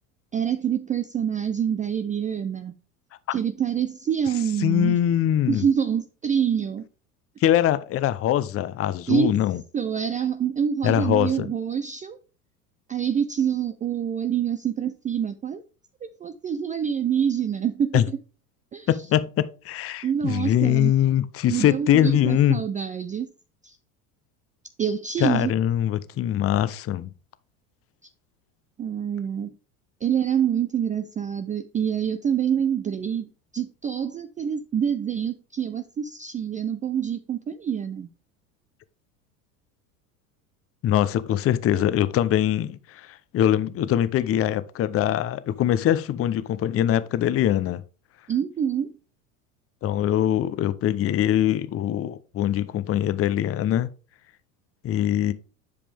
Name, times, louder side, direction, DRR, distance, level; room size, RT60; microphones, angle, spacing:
voice 1, 0.3-2.7 3.3-5.0 5.5-6.8 9.1-9.4 9.7-12.2 12.9-15.6 16.0-18.1 18.7-18.9 20.0-20.9 21.5-23.3 23.6-23.8 24.8-25.5 28.8-29.5 30.0-38.1 48.3-48.9, right 8 dB, 20° right, 0.4 m, -26 dB
voice 2, 4.6-5.6 7.4-9.6 10.8-11.5 17.9-18.1 18.9-22.6 25.2-27.1 40.8-47.8 49.8-53.9 54.8-55.3, left 11 dB, 30° left, 0.7 m, -22 dB
10.0 x 5.1 x 3.4 m
hypercardioid pair, 85°, 45 cm